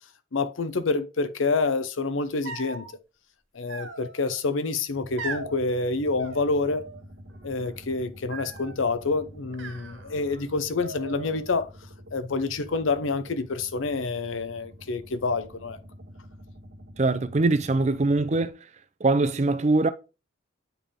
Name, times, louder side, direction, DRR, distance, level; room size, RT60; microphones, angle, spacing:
voice 1, 0.3-2.9 3.5-6.8 7.4-11.7 12.1-15.8, left 3 dB, 85° left, 0.7 m, -27 dB
sound 1, 2.4-2.9 3.7-4.4 5.2-5.6 6.2-7.0 7.3-7.8 8.3-8.8 9.5-10.4 10.8-11.5, right 3 dB, 75° right, 2.0 m, -39 dB
sound 2, 4.9-18.5, equal, 55° right, 1.2 m, -47 dB
voice 2, 17.0-18.6 19.0-19.9, right 2 dB, 35° right, 0.4 m, -22 dB
8.9 x 3.5 x 3.6 m
head